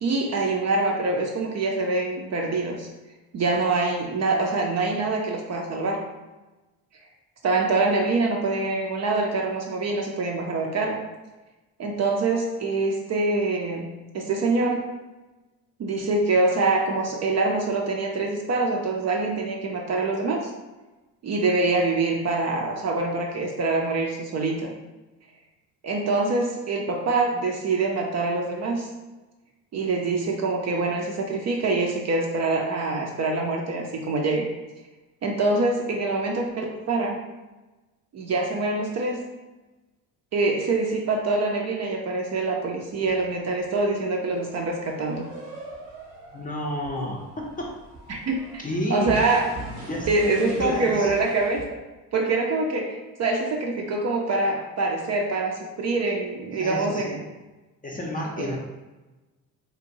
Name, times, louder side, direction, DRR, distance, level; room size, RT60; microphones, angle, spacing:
voice 1, 0.0-2.9 3.3-6.0 7.4-11.0 11.8-14.9 15.8-20.4 21.2-24.7 25.8-28.9 29.7-34.5 35.2-37.1 38.1-39.3 40.3-45.2 48.1-48.4 48.9-49.5 50.1-51.8 52.1-57.1 58.4-58.6, right 3 dB, 40° right, 0 dB, 0.5 m, -25 dB
sound 1, 42.9-51.7, right 3 dB, 75° right, 0.8 m, -41 dB
voice 2, 46.3-47.8 48.6-49.2 49.9-51.2 56.5-57.3 57.8-58.6, left 1 dB, 20° left, -1 dB, 0.5 m, -30 dB
2.8 x 2.2 x 2.6 m, 1.1 s
hypercardioid pair, 50°, 45 cm